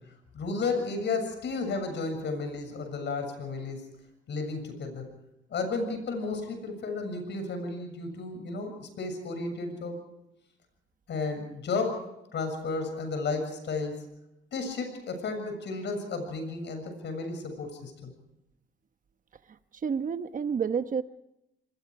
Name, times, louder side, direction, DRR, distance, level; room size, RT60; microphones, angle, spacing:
voice 1, 0.3-3.9 4.3-5.1 5.5-10.0 11.1-14.0 14.5-18.1, left 3 dB, 65° left, 6 dB, 7.0 m, -33 dB
voice 2, 19.8-21.0, right 6 dB, 40° right, 10 dB, 1.1 m, -29 dB
26.5 x 21.5 x 4.9 m, 0.86 s
cardioid pair, 90°, 20 cm